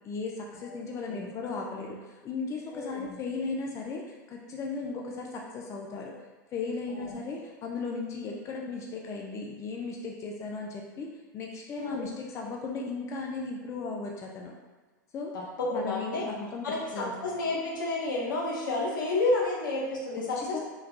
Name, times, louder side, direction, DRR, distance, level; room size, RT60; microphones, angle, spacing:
voice 1, 0.0-2.0 2.2-6.1 6.5-11.1 11.3-14.5 15.1-15.3 15.7-16.7 16.9-17.1 20.4-20.6, left 4 dB, 30° left, 0 dB, 0.4 m, -36 dB
voice 2, 2.7-3.2 6.9-7.4 11.7-12.1 15.6-16.3 16.6-20.6, left 2 dB, 80° left, -3 dB, 0.9 m, -31 dB
3.7 x 2.3 x 2.8 m, 1.3 s
hypercardioid pair, 100°, 11 cm